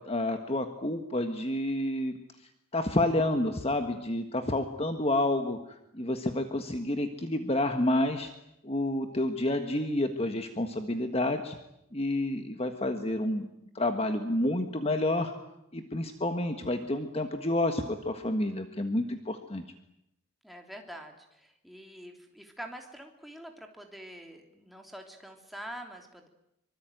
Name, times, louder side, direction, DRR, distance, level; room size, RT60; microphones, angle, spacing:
voice 1, 0.0-2.1 2.7-8.3 8.6-11.6 11.9-13.5 13.7-15.3 15.7-19.6, left 1 dB, 30° left, 7 dB, 1.6 m, -29 dB
voice 2, 20.4-26.3, right 1 dB, ahead, 2 dB, 3.4 m, -45 dB
25.0 x 24.5 x 9.3 m, 0.82 s
head